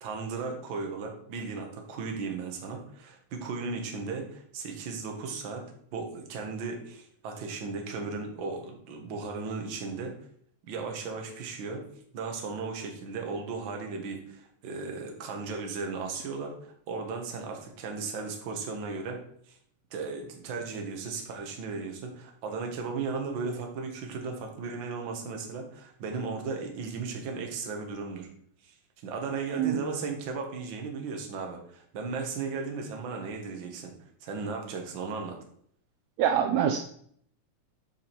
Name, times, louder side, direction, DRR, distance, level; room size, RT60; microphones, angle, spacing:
voice 1, 0.0-10.2 10.7-11.9 12.1-19.6 19.9-28.3 28.6-28.7 29.0-33.9 34.2-35.4, right 4 dB, 50° right, 2 dB, 1.7 m, -36 dB
voice 2, 36.2-36.8, right 9 dB, 75° right, 4 dB, 1.8 m, -24 dB
8.9 x 5.0 x 4.4 m, 0.64 s
omnidirectional pair, 3.4 m